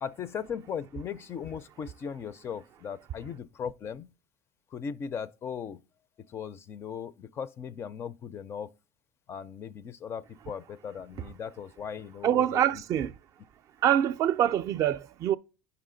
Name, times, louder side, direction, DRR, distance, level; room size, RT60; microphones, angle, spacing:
voice 1, 0.0-4.1 4.7-5.8 6.2-8.7 9.3-12.8, left 7 dB, 30° left, 0.4 m, -38 dB
voice 2, 12.2-13.1 13.8-15.4, right 10 dB, 40° right, 0.4 m, -25 dB
9.3 x 5.6 x 3.8 m
cardioid pair, 135°, 8 cm